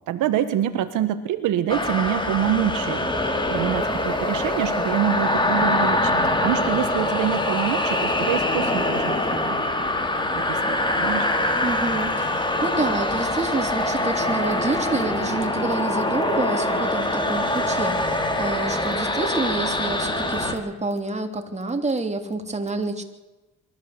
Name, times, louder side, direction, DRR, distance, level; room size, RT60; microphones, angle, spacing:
voice 1, 0.1-3.1 3.5-9.5 10.3-11.3, right 10 dB, 90° right, 9 dB, 1.6 m, -26 dB
sound 1, 1.7-20.6, left 1 dB, 15° left, 3.8 m, -24 dB
voice 2, 11.6-23.0, right 3 dB, 20° right, 5 dB, 3.4 m, -28 dB
24.0 x 14.5 x 8.2 m, 1.1 s
cardioid pair, 90°, 30 cm